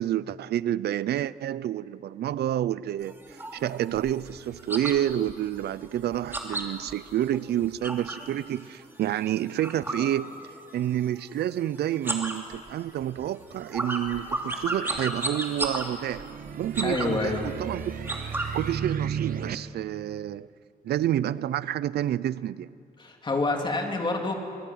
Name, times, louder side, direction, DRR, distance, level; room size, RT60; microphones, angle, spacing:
voice 1, 0.0-10.3 10.7-16.3 16.6-17.8 18.5-20.5 20.8-22.7, right 12 dB, 90° right, 0.5 m, -29 dB
sound 1, 3.0-8.3 8.7-10.8 11.1-11.6 11.9-18.8, right 2 dB, 15° right, 3.0 m, -34 dB
sound 2, 14.6-19.6, right 8 dB, 60° right, 1.0 m, -35 dB
voice 2, 16.8-17.5 23.0-24.3, left 3 dB, 30° left, 3.4 m, -27 dB
25.5 x 22.5 x 9.4 m
wide cardioid pair, 145°, 16 cm